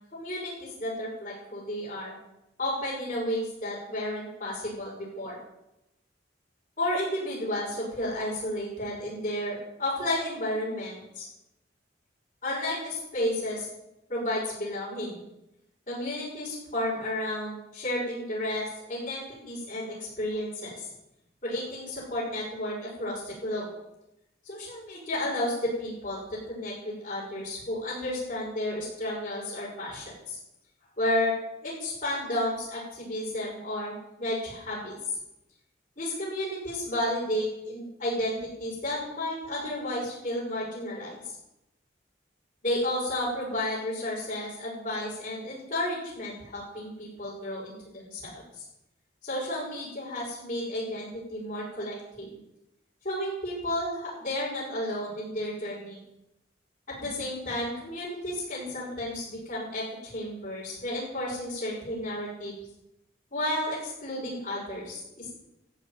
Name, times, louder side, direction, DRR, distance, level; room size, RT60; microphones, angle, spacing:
voice 1, 0.1-2.1 2.6-5.4 6.8-11.3 12.4-13.7 14.1-15.2 15.9-20.9 21.4-23.7 24.4-26.2 26.5-30.4 31.0-31.3 31.6-35.0 36.0-41.1 42.6-48.6 49.2-52.3 53.0-56.0 57.0-62.6 63.3-65.4, left 1 dB, 45° left, -10 dB, 6.9 m, -32 dB
14.5 x 6.8 x 9.3 m, 0.90 s
head